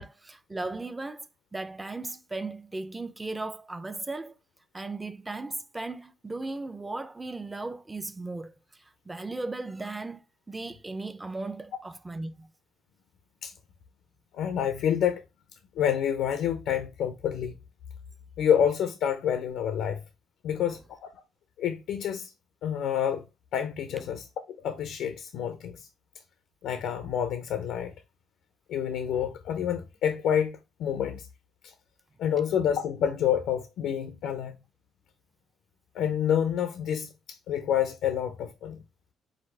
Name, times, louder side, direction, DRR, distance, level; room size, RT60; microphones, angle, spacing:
voice 1, 0.0-4.3 4.7-8.5 9.1-10.2 10.5-12.5, right 2 dB, 15° right, 0.5 m, -36 dB
voice 2, 14.3-15.2 15.8-17.5 18.4-20.0 20.4-21.1 21.6-22.3 22.6-23.2 23.5-25.9 26.6-27.9 28.7-31.3 31.6-31.7 32.2-34.6 35.9-38.8, left 9 dB, 85° left, 0.5 m, -28 dB
4.8 x 2.0 x 4.5 m
cardioid pair, 90°, 0 cm